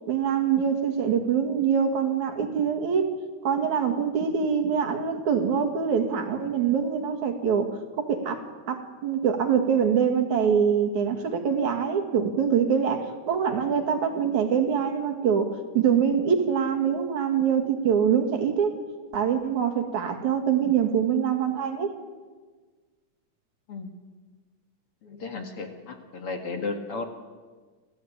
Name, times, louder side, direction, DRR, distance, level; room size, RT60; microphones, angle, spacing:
voice 1, 0.1-3.0 3.4-7.7 8.0-8.4 8.7-18.8 19.1-21.9, right 7 dB, 70° right, 5 dB, 3.3 m, -24 dB
voice 2, 25.0-27.1, left 3 dB, 50° left, 5 dB, 2.5 m, -34 dB
29.5 x 14.0 x 8.8 m, 1.4 s
omnidirectional pair, 3.5 m